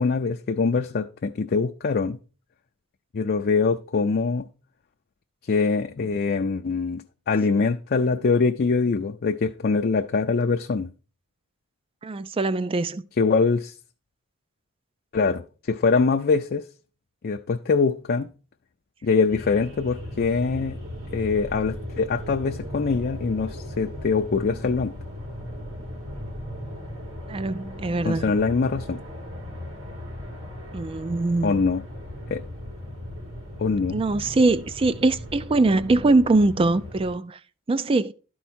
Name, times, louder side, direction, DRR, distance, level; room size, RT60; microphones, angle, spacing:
voice 1, 0.0-2.2 3.1-4.5 5.5-10.9 13.2-13.7 15.1-15.4 15.7-16.6 17.2-18.3 19.0-20.8 21.1-24.9 28.0-29.0 31.4-31.8 32.3-32.4 33.6-34.0, left 4 dB, 50° left, 0.4 m, -23 dB
voice 2, 12.0-13.0 27.3-28.3 30.7-31.5 33.9-37.4 37.7-38.1, right 2 dB, 25° right, 0.4 m, -22 dB
sound 1, 19.3-37.1, left 1 dB, 80° right, 3.3 m, -37 dB
12.0 x 4.7 x 4.3 m
head